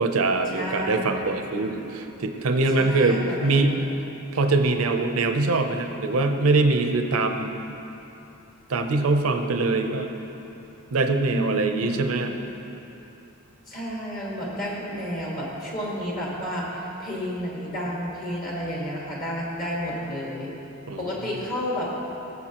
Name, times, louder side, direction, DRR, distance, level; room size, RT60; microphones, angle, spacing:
voice 1, 0.0-3.8 4.3-7.6 8.7-10.1 10.9-12.3 20.9-21.1, right 3 dB, 80° right, 5 dB, 0.6 m, -23 dB
voice 2, 0.5-1.2 2.8-3.9 11.3-12.0 13.7-20.5 21.0-21.9, equal, 40° left, -4 dB, 1.9 m, -31 dB
16.5 x 6.9 x 2.9 m, 3.0 s
head